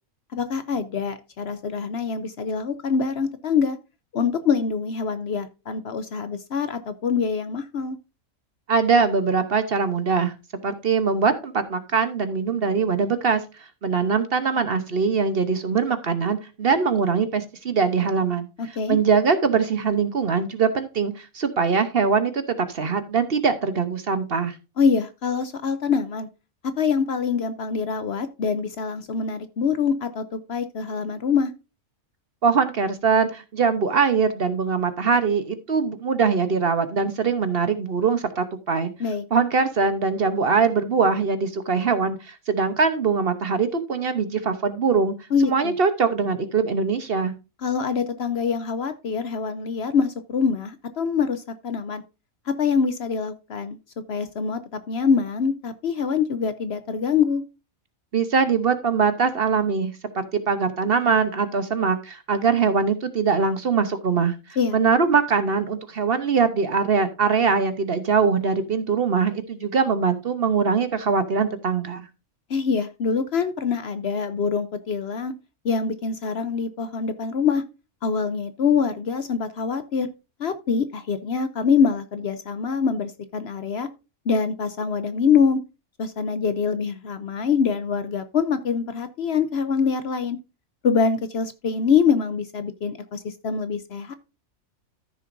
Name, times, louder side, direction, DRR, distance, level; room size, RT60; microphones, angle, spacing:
voice 1, 0.3-3.8 4.1-8.0 18.6-19.0 24.8-26.3 26.8-31.5 39.0-39.2 45.3-45.7 47.6-52.0 52.5-53.8 54.1-57.4 64.6-64.8 72.5-75.3 75.6-77.6 78.0-80.1 80.4-83.9 84.3-85.6 86.0-90.4 90.8-94.1, left 6 dB, 60° left, 0.8 m, -24 dB
voice 2, 8.7-10.3 10.6-13.4 13.8-24.5 32.4-38.9 39.3-45.1 45.4-47.3 58.1-64.3 64.7-72.1, right 5 dB, 50° right, 1.0 m, -22 dB
14.0 x 6.4 x 2.6 m
omnidirectional pair, 1.4 m